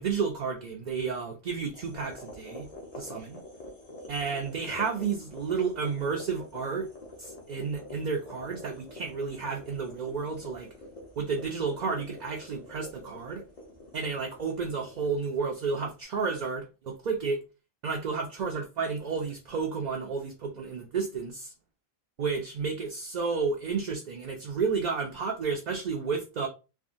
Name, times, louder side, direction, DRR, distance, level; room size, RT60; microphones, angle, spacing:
voice 1, 0.0-2.7 3.0-3.4 4.1-6.9 7.2-10.7 11.2-13.4 13.9-17.4 17.8-21.5 22.2-26.5, right 5 dB, 55° right, 0.5 m, -31 dB
sound 1, 1.7-16.0, left 1 dB, 40° left, 0.8 m, -47 dB
3.4 x 2.1 x 2.5 m
omnidirectional pair, 1.1 m